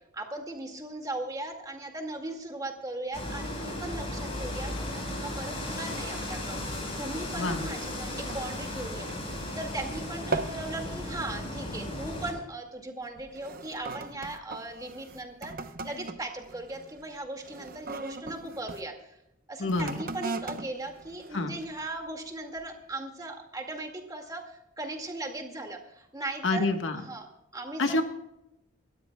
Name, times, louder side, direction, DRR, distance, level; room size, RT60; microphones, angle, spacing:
voice 1, 0.1-6.6 7.0-15.6 15.8-19.2 19.5-26.7 27.0-28.0, right 2 dB, 20° right, 3 dB, 2.1 m, -38 dB
sound 1, 3.1-12.3, left 1 dB, 30° left, 4.6 m, -35 dB
sound 2, 7.3-9.9 10.1-10.7 11.1-11.4 12.1-12.3 13.0-18.9 19.6-22.0 22.6-22.7, right 3 dB, 45° right, 0.9 m, -39 dB
voice 2, 7.4-7.7 19.6-19.9 21.3-21.5 26.4-27.0 27.8-28.0, left 2 dB, 75° left, 6 dB, 1.4 m, -27 dB
28.0 x 13.0 x 2.3 m, 0.85 s
head